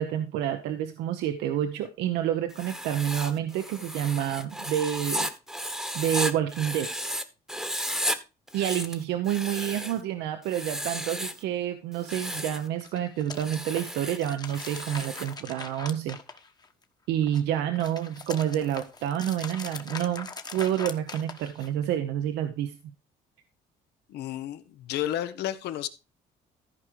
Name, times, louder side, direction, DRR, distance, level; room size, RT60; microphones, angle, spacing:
voice 1, 0.0-5.3 5.9-6.9 8.5-16.2 17.1-22.9, right 10 dB, 90° right, 1.0 m, -29 dB
Writing, 2.5-7.2 7.5-8.2 8.5-10.0 10.5-11.4 11.9-12.6 13.3-15.3, equal, ahead, 1.2 m, -34 dB
sound 1, 12.7-16.8 17.2-21.8, left 4 dB, 25° left, 1.2 m, -41 dB
voice 2, 24.1-25.9, left 12 dB, 80° left, 1.1 m, -32 dB
14.0 x 5.0 x 4.7 m
cardioid pair, 110°, 17 cm